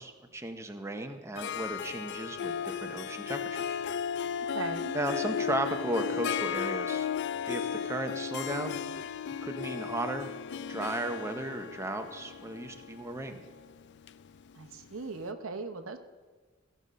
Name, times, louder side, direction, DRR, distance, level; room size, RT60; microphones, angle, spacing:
voice 1, 0.0-3.8 4.4-4.6 4.9-7.1 7.5-8.8 9.4-10.3 10.7-13.4, right 1 dB, 15° right, 5 dB, 0.6 m, -35 dB
Harp, 1.4-14.9, left 7 dB, 60° left, 0.4 m, -35 dB
voice 2, 4.5-4.9 14.5-16.0, right 3 dB, 75° right, 8 dB, 0.8 m, -38 dB
14.5 x 5.3 x 6.3 m, 1.4 s
head